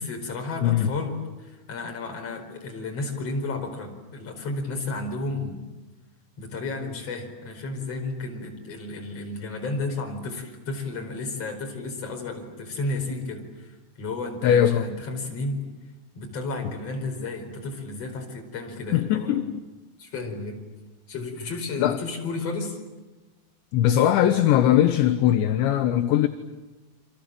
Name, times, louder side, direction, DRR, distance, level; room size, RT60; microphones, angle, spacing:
voice 1, 0.0-5.6 6.4-15.6 16.1-19.3 20.0-20.6 21.1-22.8, left 3 dB, 30° left, 2 dB, 5.4 m, -32 dB
voice 2, 14.4-14.9 18.9-19.6 21.8-22.0 23.7-26.3, left 11 dB, 75° left, 8 dB, 3.2 m, -20 dB
30.0 x 25.5 x 7.7 m, 1.2 s
omnidirectional pair, 5.8 m